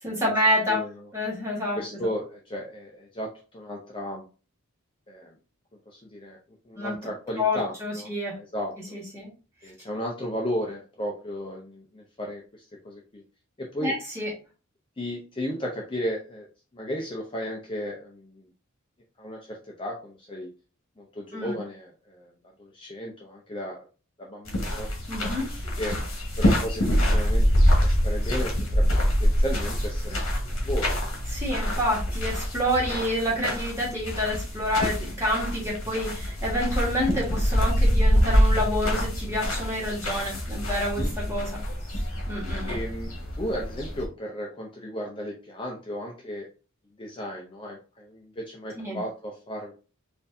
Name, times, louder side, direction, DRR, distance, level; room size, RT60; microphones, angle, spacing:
voice 1, 0.0-0.8 1.1-1.8 6.7-6.9 7.4-8.4 8.9-9.3 13.8-14.3 21.3-21.6 25.1-25.4 31.3-41.5 41.9-42.0 42.3-42.7 48.7-49.0, equal, 10° right, -5 dB, 1.5 m, -28 dB
voice 2, 0.7-1.1 1.7-4.2 5.1-5.3 5.9-6.4 6.7-8.1 8.4-9.0 9.6-13.2 13.6-14.0 15.0-16.5 16.7-18.5 19.2-20.5 21.0-22.3 22.6-23.9 24.2-24.9 25.4-26.0 26.4-31.1 41.0-41.3 42.7-46.5 47.0-49.7, equal, 25° left, -1 dB, 0.5 m, -35 dB
sound 1, 24.5-44.1, equal, 60° left, 1.2 m, -25 dB
4.3 x 2.6 x 2.6 m, 0.35 s
head